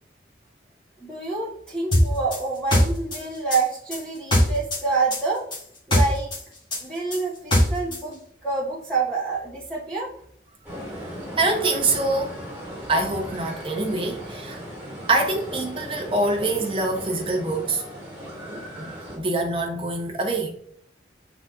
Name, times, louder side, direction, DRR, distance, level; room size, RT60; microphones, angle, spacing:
voice 1, 1.0-5.4 5.9-6.3 6.8-10.1, right 4 dB, 5° left, 1.1 m, -27 dB
sound 1, 1.9-4.8 5.1-8.0, left 1 dB, 25° left, 1.9 m, -21 dB
sound 2, 10.6-19.2, equal, 10° right, 2.3 m, -37 dB
voice 2, 11.4-12.4 12.9-14.6 15.1-17.8 18.7-20.5, right 2 dB, 30° right, 1.0 m, -25 dB
7.2 x 4.1 x 3.6 m
head